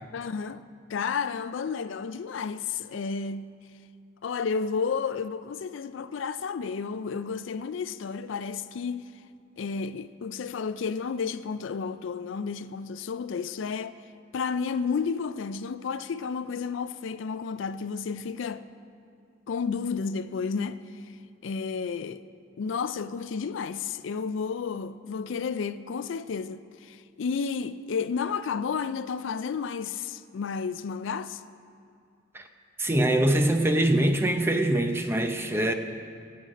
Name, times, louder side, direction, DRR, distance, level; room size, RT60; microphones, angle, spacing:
voice 1, 0.1-0.6 0.9-3.5 4.2-9.0 9.6-13.9 14.3-18.6 19.5-20.8 21.4-22.2 22.6-31.4, left 5 dB, 70° left, 0.4 m, -31 dB
voice 2, 32.8-35.7, right 1 dB, 10° right, 0.6 m, -23 dB
19.0 x 7.9 x 5.0 m
head